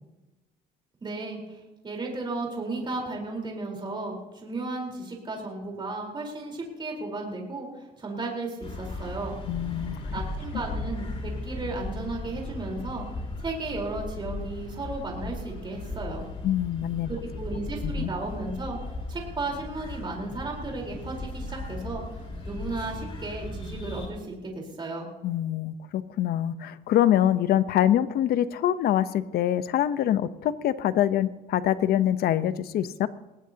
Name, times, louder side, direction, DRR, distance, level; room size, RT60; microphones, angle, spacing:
voice 1, 1.0-9.4 10.1-13.0 13.4-16.3 17.1-18.8 19.1-22.0 22.4-25.1, right 2 dB, 25° right, 0 dB, 4.1 m, -34 dB
sound 1, 8.6-24.1, left 2 dB, 35° left, 4.1 m, -36 dB
voice 2, 9.5-10.0 16.4-17.1 17.8-18.1 25.2-33.1, left 11 dB, 65° left, 14 dB, 0.9 m, -25 dB
20.5 x 16.0 x 2.9 m, 1.1 s
cardioid pair, 110°, 17 cm